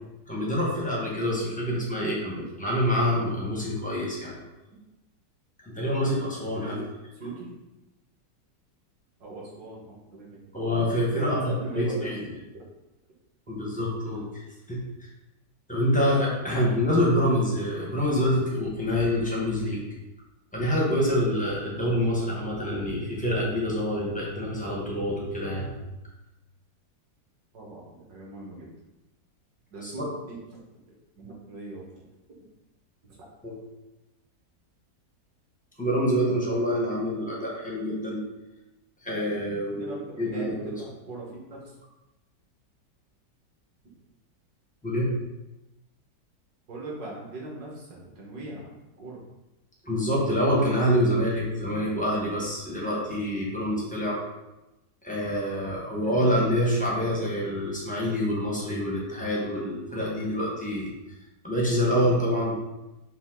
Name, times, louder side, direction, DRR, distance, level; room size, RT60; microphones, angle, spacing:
voice 1, 0.3-4.4 5.6-6.8 10.5-12.4 13.5-14.3 14.7-14.8 15.7-19.9 20.5-25.7 29.8-30.1 33.4-33.6 35.8-38.2 39.0-40.8 44.8-45.1 49.8-54.2 55.0-60.9 61.4-62.6, equal, 10° left, -5 dB, 0.4 m, -26 dB
voice 2, 9.2-10.3 11.2-12.1 12.5-12.6 27.5-28.7 29.7-30.4 31.1-32.0 33.0-33.2 39.7-41.7 46.7-49.2, right 2 dB, 65° right, -4 dB, 1.7 m, -40 dB
5.4 x 2.6 x 3.6 m, 1.0 s
omnidirectional pair, 1.9 m